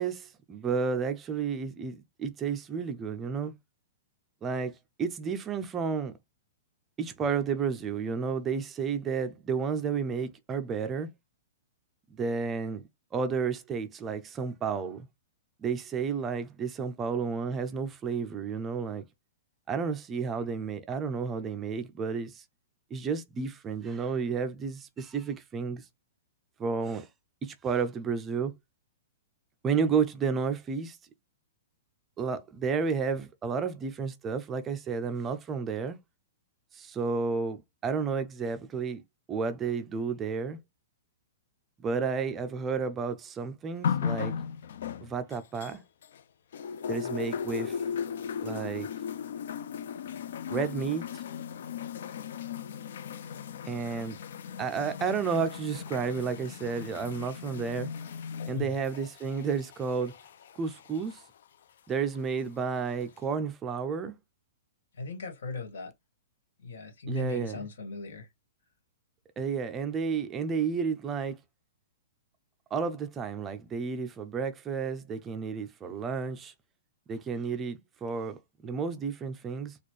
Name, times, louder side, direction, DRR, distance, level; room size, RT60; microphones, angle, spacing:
voice 1, 0.0-3.5 4.4-6.1 7.0-11.1 12.1-12.8 13.1-15.1 15.6-19.1 19.7-22.4 22.9-25.8 26.6-27.1 27.4-28.5 29.6-31.0 32.2-36.0 36.7-39.0 39.3-40.6 41.8-44.3 45.0-45.8 46.9-47.8 48.4-48.9 50.5-51.2 53.7-54.2 54.6-57.9 58.5-60.2 60.6-61.2 61.9-64.1 67.1-67.7 69.4-71.4 72.7-76.5 77.1-79.8, right 5 dB, 15° right, 0.4 m, -31 dB
sound 1, 43.8-46.2 46.5-61.2 62.1-62.2, left 7 dB, 60° left, 0.4 m, -37 dB
voice 2, 65.0-65.9 66.6-68.3, left 3 dB, 85° left, 1.7 m, -38 dB
4.2 x 2.3 x 3.1 m
hypercardioid pair, 170°, 0 cm